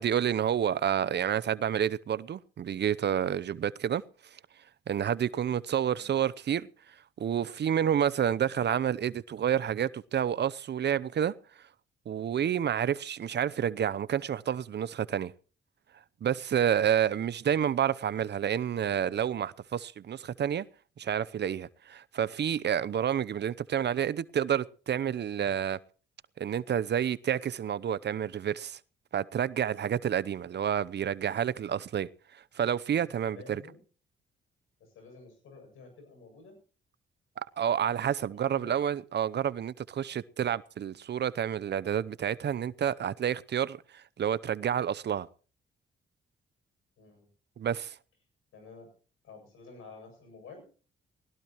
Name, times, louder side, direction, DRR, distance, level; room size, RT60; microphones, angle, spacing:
voice 1, 0.0-4.0 4.3-4.4 4.9-11.6 12.1-15.3 16.2-20.7 21.0-25.8 26.4-28.8 29.1-33.6 37.6-45.3 47.6-48.0, right 9 dB, 55° right, 0.7 m, -29 dB
voice 2, 32.9-33.8 34.8-36.6 38.2-38.7 47.0-47.3 48.5-48.9 49.2-50.7, left 4 dB, 80° left, 7.7 m, -51 dB
20.0 x 18.0 x 3.1 m
supercardioid pair, 60°, 21 cm